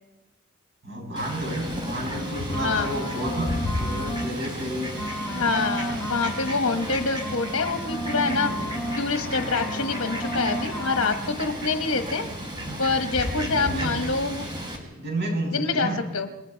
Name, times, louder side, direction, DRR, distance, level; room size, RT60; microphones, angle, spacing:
voice 1, 0.8-5.1 13.3-14.0 15.0-16.0, right 1 dB, 50° right, 0 dB, 7.6 m, -31 dB
Fowl, 1.2-14.8, equal, 20° right, 4.2 m, -33 dB
sound 1, 2.1-4.4 4.7-9.1 9.3-11.4, equal, 15° left, 1.5 m, -34 dB
voice 2, 2.6-2.9 5.3-12.3 12.8-14.4 15.5-16.3, left 4 dB, 65° left, 5 dB, 1.2 m, -26 dB
Brass instrument, 8.0-12.0, left 3 dB, 40° left, 2.1 m, -42 dB
29.0 x 21.0 x 4.6 m, 1.1 s
head